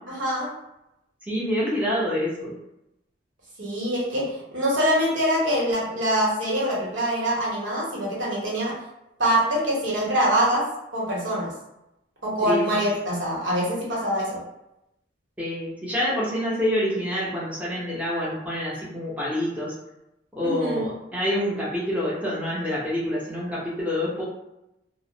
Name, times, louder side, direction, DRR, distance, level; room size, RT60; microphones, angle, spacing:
voice 1, 0.1-0.5 3.6-8.8 9.2-11.5 12.2-14.4 20.4-20.9, equal, 80° right, -5 dB, 1.0 m, -24 dB
voice 2, 1.3-2.5 12.4-12.8 15.4-19.7 20.3-24.2, left 1 dB, 10° right, -7 dB, 0.6 m, -27 dB
2.3 x 2.0 x 2.7 m, 0.87 s
head